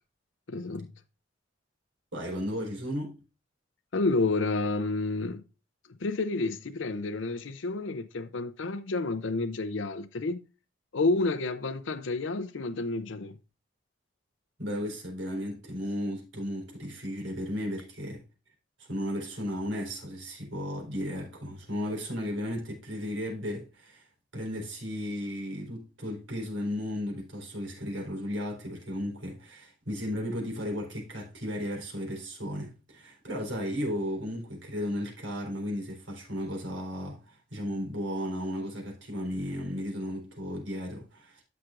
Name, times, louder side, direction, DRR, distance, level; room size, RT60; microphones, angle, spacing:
voice 1, 0.5-0.9 3.9-5.4 5.9-10.4 10.9-13.4, left 3 dB, 75° left, 0.6 m, -30 dB
voice 2, 2.1-3.2 14.6-18.2 18.8-41.4, equal, 85° right, 4.2 m, -35 dB
13.0 x 6.1 x 2.5 m
head